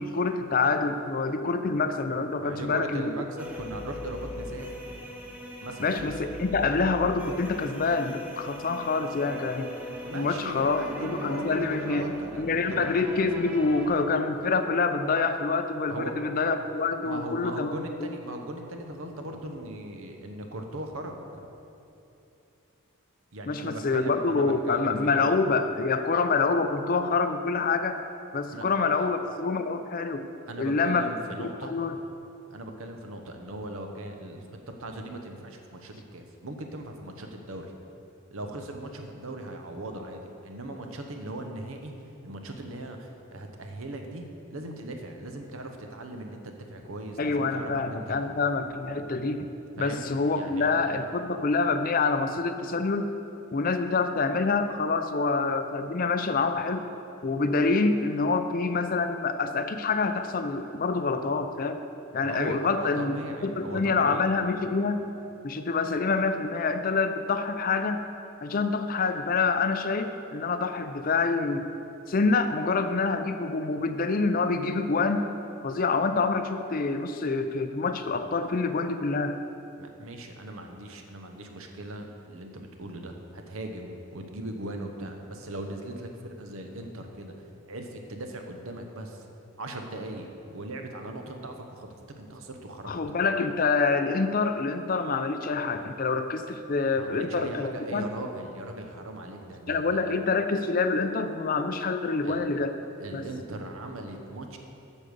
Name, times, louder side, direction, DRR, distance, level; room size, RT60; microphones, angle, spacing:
voice 1, 0.0-3.1 5.8-9.7 10.1-12.0 12.4-17.7 18.0-18.1 23.5-28.0 28.3-30.3 30.6-31.1 31.7-31.9 47.2-49.5 49.8-53.1 53.5-56.9 57.2-61.8 62.1-63.2 63.4-65.0 65.4-68.0 68.4-71.7 72.1-75.3 75.6-79.4 92.9-98.1 99.7-102.8 103.1-103.2, left 4 dB, 40° left, 9 dB, 0.4 m, -26 dB
voice 2, 2.4-4.7 5.6-6.0 10.1-12.9 15.9-16.1 17.0-21.4 23.3-25.3 28.5-28.7 28.9-29.1 30.5-31.9 32.5-34.5 34.8-37.7 38.3-41.9 42.2-48.2 49.8-50.7 62.2-64.2 79.8-87.3 87.7-89.3 89.6-92.9 96.9-100.1 102.2-102.4 103.0-104.6, right 1 dB, 65° right, 4 dB, 0.9 m, -39 dB
sound 1, 3.4-13.9, left 1 dB, 5° right, 0.8 m, -39 dB
8.5 x 6.5 x 6.7 m, 2.8 s
head